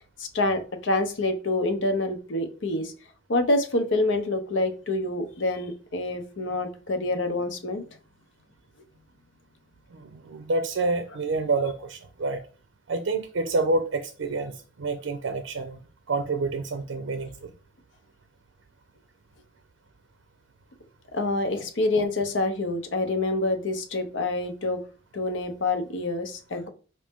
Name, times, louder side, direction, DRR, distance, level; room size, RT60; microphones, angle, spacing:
voice 1, 0.2-2.9 3.3-7.8 21.1-24.8 25.1-26.7, left 2 dB, 70° left, 0.7 m, -27 dB
voice 2, 9.9-12.4 12.9-15.8 16.1-17.5, right 3 dB, 80° right, 0.5 m, -28 dB
5.2 x 2.7 x 3.5 m
head